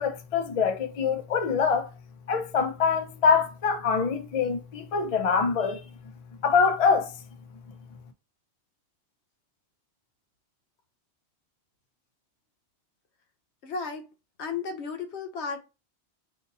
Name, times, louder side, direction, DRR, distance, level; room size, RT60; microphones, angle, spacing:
voice 1, 0.0-1.9 2.3-5.8 6.4-7.2, left 5 dB, 45° left, 0.5 m, -24 dB
voice 2, 13.6-14.1 14.4-15.6, left 5 dB, 75° left, 1.0 m, -34 dB
2.7 x 2.6 x 3.8 m
omnidirectional pair, 1.2 m